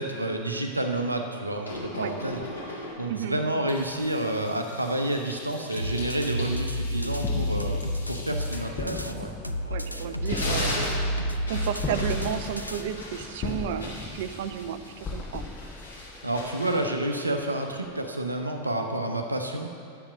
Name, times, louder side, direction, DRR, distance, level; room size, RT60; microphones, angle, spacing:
voice 1, 0.0-2.4 3.0-9.3 16.2-19.7, right 1 dB, 85° right, 4 dB, 0.9 m, -29 dB
sound 1, 1.6-3.2 3.7-9.7 10.1-17.9, left 1 dB, 70° left, 2.9 m, -39 dB
sound 2, 5.8-9.1 9.4-12.8, equal, 90° left, 0.4 m, -30 dB
sound 3, 7.2-16.7, left 4 dB, 20° left, 0.6 m, -38 dB
voice 2, 9.7-10.8 11.5-15.4, right 9 dB, 55° right, 10 dB, 0.5 m, -32 dB
10.0 x 7.9 x 5.0 m, 2.4 s
figure-of-eight pair, 90°, 0 cm